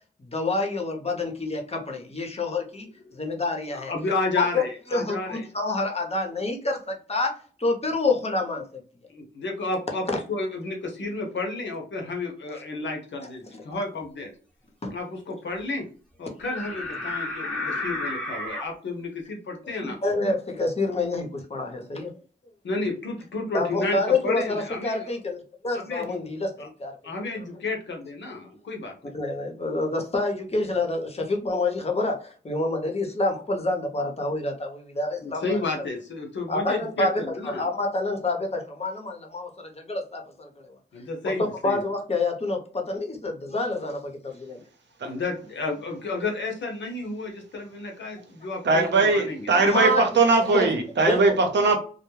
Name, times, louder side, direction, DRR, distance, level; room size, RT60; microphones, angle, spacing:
voice 1, 0.2-2.9 3.1-3.9 4.4-4.6 4.9-8.8 10.1-10.2 13.2-13.6 14.8-14.9 19.6-22.2 23.5-27.1 29.0-35.6 36.5-40.7 41.2-44.6 49.6-50.0 50.5-50.7 51.1-51.2, left 2 dB, 35° left, 2 dB, 0.8 m, -28 dB
voice 2, 3.7-5.4 9.1-10.0 10.3-14.3 14.9-15.8 16.2-20.0 20.2-20.3 22.6-25.0 25.8-26.2 27.0-29.1 35.2-37.7 40.9-41.8 45.0-49.5, left 3 dB, 70° left, 2 dB, 0.8 m, -31 dB
sound 1, 16.4-18.7, left 2 dB, 5° left, 0.9 m, -31 dB
voice 3, 48.6-51.8, right 3 dB, 65° right, 4 dB, 0.7 m, -20 dB
2.2 x 2.0 x 3.1 m, 0.40 s
cardioid pair, 45°, 19 cm